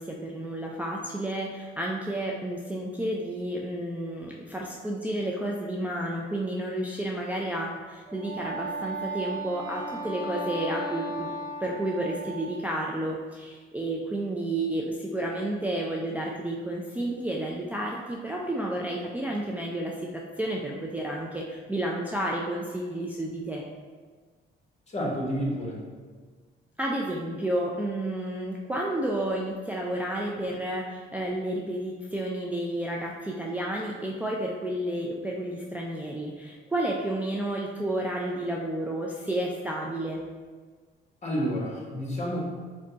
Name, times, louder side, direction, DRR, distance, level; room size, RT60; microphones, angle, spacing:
voice 1, 0.0-11.3 11.6-23.6 26.8-40.2, right 1 dB, 10° right, -3 dB, 0.4 m, -31 dB
Wind instrument woodwind instrument, 8.1-12.7, right 1 dB, 45° right, 1.2 m, -36 dB
voice 2, 24.9-25.8 41.2-42.5, equal, 35° left, -3 dB, 1.4 m, -30 dB
5.0 x 2.3 x 3.9 m, 1.5 s
cardioid pair, 90°, 20 cm